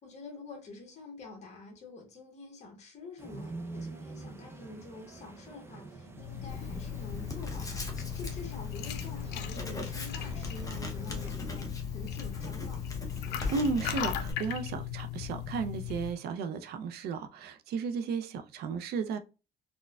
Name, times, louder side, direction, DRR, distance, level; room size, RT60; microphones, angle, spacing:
voice 1, 0.0-12.8, left 3 dB, 40° left, 1.1 m, -47 dB
sound 1, 3.2-11.3, right 3 dB, 15° right, 0.5 m, -47 dB
sound 2, 6.1-16.1, left 11 dB, 80° left, 0.5 m, -38 dB
Writing, 6.5-14.3, left 2 dB, 20° left, 0.7 m, -39 dB
voice 2, 13.5-19.2, right 5 dB, 70° right, 0.5 m, -34 dB
4.2 x 2.2 x 2.2 m
cardioid pair, 110°, 17 cm